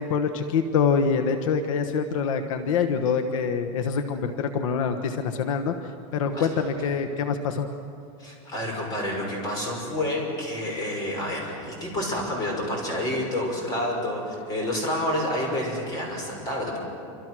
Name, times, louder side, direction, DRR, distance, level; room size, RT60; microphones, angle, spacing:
voice 1, 0.0-5.7 6.1-7.7, left 6 dB, 70° left, 7 dB, 1.3 m, -25 dB
voice 2, 6.3-6.7 8.2-16.8, left 1 dB, 20° left, 0 dB, 6.0 m, -29 dB
28.0 x 26.0 x 6.3 m, 2.5 s
supercardioid pair, 170°, 17 cm